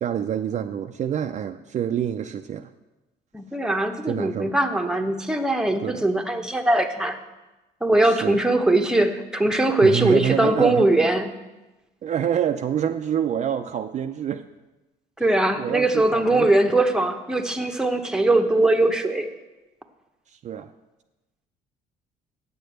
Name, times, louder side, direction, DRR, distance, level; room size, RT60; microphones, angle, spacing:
voice 1, 0.0-2.7 4.1-4.6 5.8-6.0 8.0-8.4 9.8-10.9 12.0-14.5 15.6-16.5 20.3-20.7, right 9 dB, 45° right, 7 dB, 0.4 m, -27 dB
voice 2, 3.3-7.2 7.8-11.3 15.2-19.3, right 2 dB, 5° right, 4 dB, 0.9 m, -21 dB
8.5 x 6.6 x 7.8 m, 1.1 s
cardioid pair, 110°, 17 cm